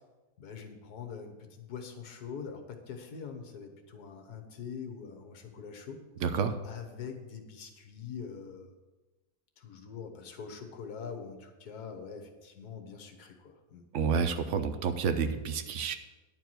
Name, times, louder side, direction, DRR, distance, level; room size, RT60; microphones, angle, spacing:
voice 1, 0.4-6.0 6.6-8.7 9.6-13.8, left 6 dB, 65° left, 4 dB, 1.6 m, -43 dB
voice 2, 6.2-6.6 13.9-16.0, right 5 dB, 65° right, 9 dB, 0.7 m, -29 dB
10.5 x 4.6 x 7.7 m, 1.2 s
omnidirectional pair, 1.8 m